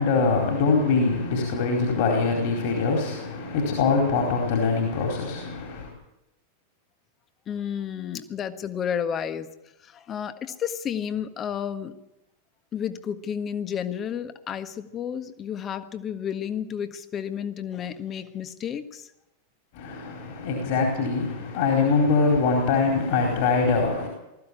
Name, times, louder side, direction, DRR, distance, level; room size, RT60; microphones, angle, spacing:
voice 1, 0.0-5.9 19.7-24.1, left 4 dB, 50° left, 4.4 m, -23 dB
voice 2, 7.5-9.5 9.8-11.9 12.7-19.1, left 8 dB, 25° left, 1.6 m, -31 dB
20.0 x 15.0 x 8.8 m
figure-of-eight pair, 90°, 0 cm